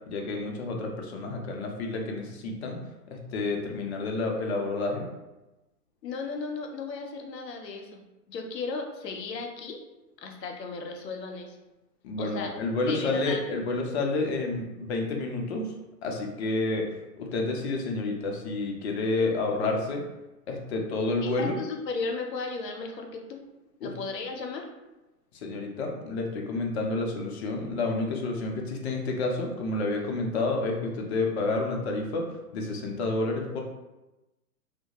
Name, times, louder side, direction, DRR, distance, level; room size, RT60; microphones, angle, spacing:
voice 1, 0.1-2.8 3.1-5.1 12.0-15.7 16.0-16.9 17.2-20.0 20.5-21.5 23.8-23.9 25.4-32.2 32.5-33.6, left 2 dB, 45° left, 1 dB, 0.5 m, -29 dB
voice 2, 6.0-8.0 8.3-9.8 10.2-11.6 12.2-12.5 12.9-13.4 21.2-23.4 23.8-24.7, left 4 dB, 85° left, 3 dB, 0.7 m, -35 dB
2.3 x 2.1 x 2.8 m, 1.0 s
hypercardioid pair, 130°, 48 cm